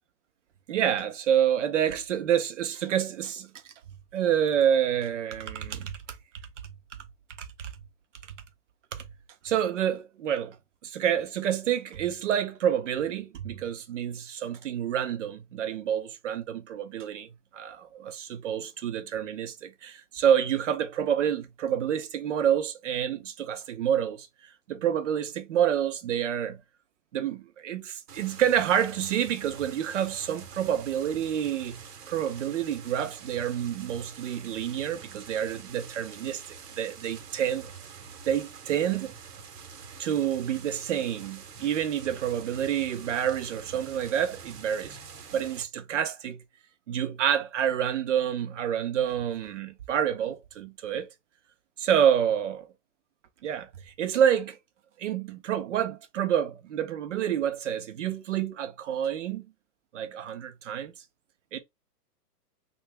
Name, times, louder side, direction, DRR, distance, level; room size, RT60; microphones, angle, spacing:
voice 1, 0.7-3.5 4.1-6.0 7.4-7.7 9.4-10.6 10.8-17.3 17.5-24.3 24.7-26.6 27.1-36.4 36.8-37.7 38.3-39.1 40.0-45.0 45.3-46.4 46.9-51.1 51.8-52.7 53.4-54.6 55.0-59.5 59.9-60.9 61.5-61.6, right 9 dB, 50° right, 0.5 m, -28 dB
sound 1, 28.1-45.6, right 6 dB, 70° right, 0.9 m, -46 dB
2.7 x 2.3 x 3.2 m
hypercardioid pair, 150°, 48 cm